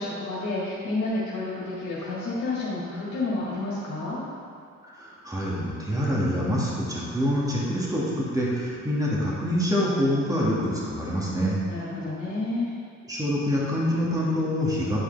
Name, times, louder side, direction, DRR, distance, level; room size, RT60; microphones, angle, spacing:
voice 1, 0.0-4.2 11.7-12.7, left 2 dB, 75° left, -7 dB, 1.8 m, -30 dB
voice 2, 5.0-11.6 13.1-15.0, equal, 10° right, -6 dB, 1.9 m, -26 dB
10.0 x 4.9 x 3.4 m, 2.4 s
cardioid pair, 90°, 30 cm